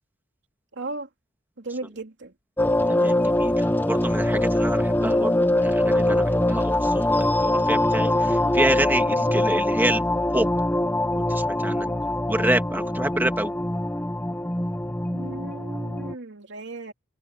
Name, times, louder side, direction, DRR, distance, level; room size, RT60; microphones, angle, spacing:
voice 1, 0.8-1.1 1.6-2.3 8.9-9.3 11.7-12.0 15.0-16.9, right 2 dB, 65° right, 3.1 m, -36 dB
sound 1, 2.6-16.1, left 1 dB, 10° left, 1.0 m, -23 dB
voice 2, 2.9-10.0 10.3-10.5 11.3-11.9 12.3-13.5, right 1 dB, 10° right, 2.2 m, -28 dB
head